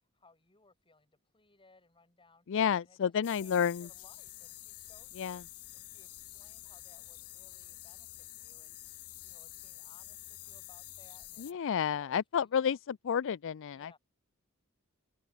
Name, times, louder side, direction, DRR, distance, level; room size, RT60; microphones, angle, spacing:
voice 1, 0.1-12.8 13.7-14.0, left 3 dB, 25° left, 7.1 m, -64 dB
voice 2, 2.5-3.9 5.2-5.4 11.4-14.0, left 7 dB, 60° left, 0.4 m, -31 dB
sound 1, 3.2-11.5, left 16 dB, 85° left, 3.8 m, -49 dB
head